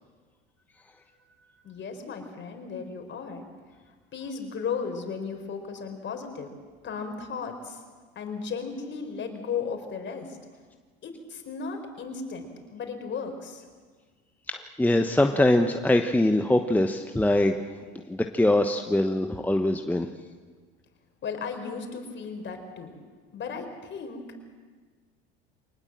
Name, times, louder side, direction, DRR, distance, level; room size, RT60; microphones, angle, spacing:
voice 1, 1.6-3.4 4.1-6.5 6.8-7.8 8.1-10.4 11.0-13.6 21.2-23.0 23.3-24.2, left 5 dB, 40° left, 5 dB, 4.6 m, -35 dB
voice 2, 14.5-17.6 18.1-20.1, left 1 dB, 5° left, 5 dB, 1.1 m, -23 dB
24.5 x 19.5 x 7.5 m, 1.5 s
hypercardioid pair, 80°, 30 cm